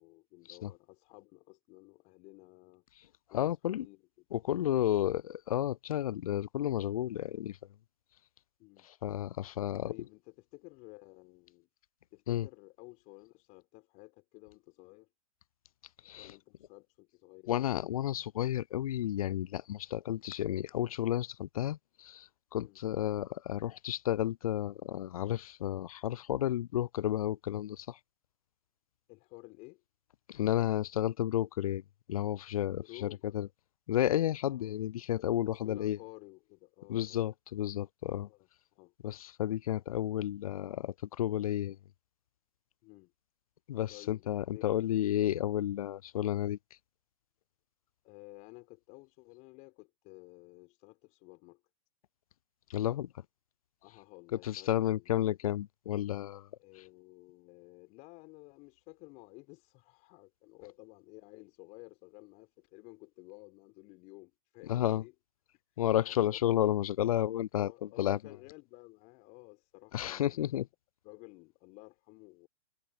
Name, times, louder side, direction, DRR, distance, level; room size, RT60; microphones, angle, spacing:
voice 1, 0.0-2.8 3.3-4.0 8.6-8.9 9.8-11.7 12.1-15.1 16.2-18.0 22.6-22.8 29.1-29.8 32.8-33.5 34.4-34.8 35.5-37.3 38.3-38.9 42.8-43.1 43.9-45.5 48.0-51.6 53.8-55.3 56.6-65.1 66.0-66.4 67.5-70.7 71.0-72.5, left 26 dB, 40° left, 4.0 m, -54 dB
voice 2, 3.3-3.9 4.3-7.6 9.0-9.9 12.3-12.5 16.0-16.3 17.5-28.0 30.3-31.8 32.1-33.5 33.9-36.0 36.9-38.3 39.0-41.8 43.7-46.6 52.7-53.1 54.4-56.5 64.7-65.0 65.8-68.2 69.9-70.7, left 12 dB, 65° left, 0.4 m, -32 dB
hypercardioid pair, 115°, 20 cm